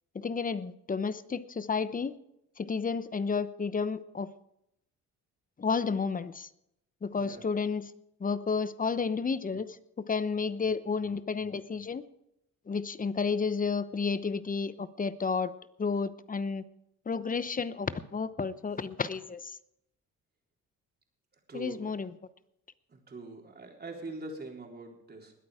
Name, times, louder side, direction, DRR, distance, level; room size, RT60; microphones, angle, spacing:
voice 1, 0.1-2.1 2.6-4.3 5.6-6.5 7.0-7.9 8.2-12.0 12.7-15.5 15.8-16.6 17.1-19.6 21.5-22.1, left 5 dB, 30° left, 15 dB, 0.9 m, -31 dB
voice 2, 7.1-7.5 21.5-21.9 22.9-25.3, right 2 dB, 30° right, 1 dB, 3.8 m, -43 dB
20.5 x 8.7 x 5.0 m, 0.78 s
cardioid pair, 90°, 30 cm